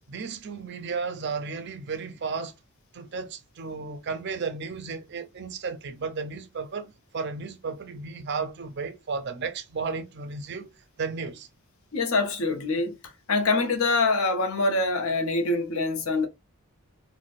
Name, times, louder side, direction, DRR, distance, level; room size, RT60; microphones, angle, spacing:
voice 1, 0.1-2.5 2.9-10.7 11.0-11.5, right 5 dB, 50° right, 0.5 m, -34 dB
voice 2, 11.9-16.3, left 3 dB, 70° left, 0.8 m, -25 dB
3.9 x 2.2 x 2.4 m
head